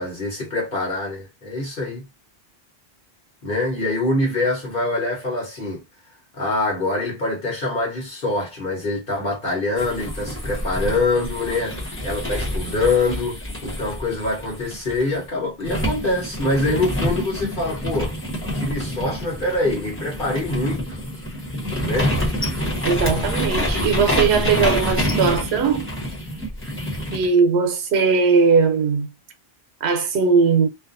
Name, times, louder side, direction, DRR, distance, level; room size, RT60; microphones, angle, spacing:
voice 1, 0.0-2.0 3.4-5.8 6.4-18.2 18.5-21.0 21.8-22.1, left 2 dB, 60° left, 1.2 m, -24 dB
sound 1, 9.8-15.2 15.7-27.3, equal, 15° left, 0.9 m, -27 dB
voice 2, 22.8-25.9 27.1-29.1 29.8-30.7, right 5 dB, 85° right, 0.9 m, -19 dB
2.5 x 2.3 x 2.4 m
omnidirectional pair, 1.0 m